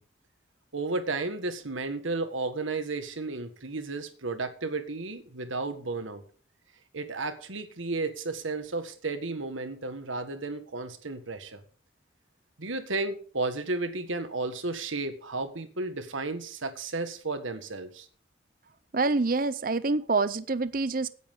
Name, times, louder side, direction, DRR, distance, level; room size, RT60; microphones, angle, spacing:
voice 1, 0.7-6.2 6.9-11.6 12.6-18.1, right 3 dB, 85° right, 9 dB, 1.6 m, -33 dB
voice 2, 18.9-21.1, right 3 dB, 45° right, 15 dB, 0.6 m, -26 dB
17.0 x 10.0 x 3.7 m, 0.42 s
head